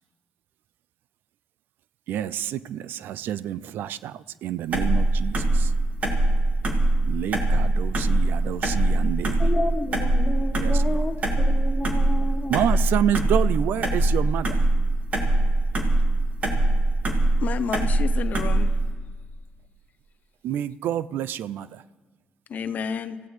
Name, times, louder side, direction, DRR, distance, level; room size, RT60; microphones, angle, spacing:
voice 1, 2.1-5.7 7.0-9.5 10.6-10.8 12.5-14.6 20.4-21.8, right 11 dB, 80° right, 0.3 m, -28 dB
sound 1, 4.7-18.9, right 2 dB, 45° right, 2.0 m, -22 dB
voice 2, 9.4-12.6, left 2 dB, 15° left, 1.2 m, -31 dB
voice 3, 17.4-18.7 22.5-23.2, left 6 dB, 55° left, 0.6 m, -30 dB
25.0 x 15.5 x 3.2 m
cardioid pair, 110°, 3 cm